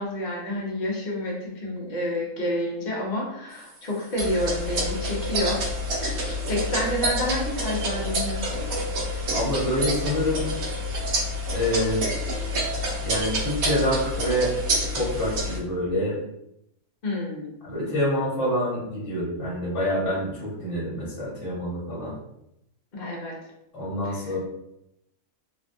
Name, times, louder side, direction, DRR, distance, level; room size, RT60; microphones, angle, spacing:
voice 1, 0.0-5.6 5.9-8.7 17.0-17.5 22.9-23.3 24.0-24.3, left 1 dB, 40° left, -3 dB, 0.8 m, -29 dB
sound 1, 4.2-15.6, equal, 85° right, 1.2 m, -28 dB
voice 2, 9.3-10.4 11.5-12.0 13.0-14.5 14.9-16.2 17.6-22.1 23.7-24.4, left 1 dB, 60° left, -7 dB, 1.4 m, -26 dB
3.3 x 2.2 x 2.5 m, 0.80 s
omnidirectional pair, 1.4 m